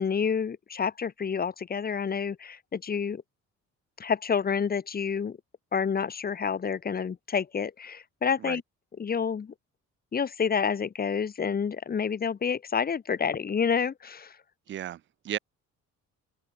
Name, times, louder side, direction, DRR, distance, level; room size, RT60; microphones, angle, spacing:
voice 1, 0.0-3.2 4.0-5.4 5.7-8.6 9.0-9.5 10.1-14.4, left 6 dB, 30° left, 0.8 m, -29 dB
voice 2, 14.7-15.4, right 12 dB, 40° right, 0.4 m, -35 dB
open air
cardioid pair, 90°, 30 cm